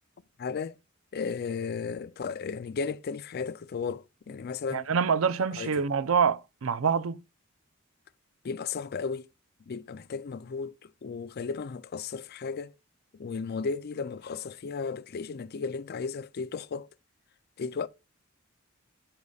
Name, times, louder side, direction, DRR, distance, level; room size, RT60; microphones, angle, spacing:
voice 1, 0.4-0.8 1.1-4.9 5.6-5.9 8.4-9.3 9.7-12.7 13.1-16.9 17.6-17.9, left 5 dB, 50° left, 0.4 m, -34 dB
voice 2, 4.7-7.2, right 6 dB, 80° right, 0.6 m, -26 dB
14.5 x 5.3 x 2.4 m
head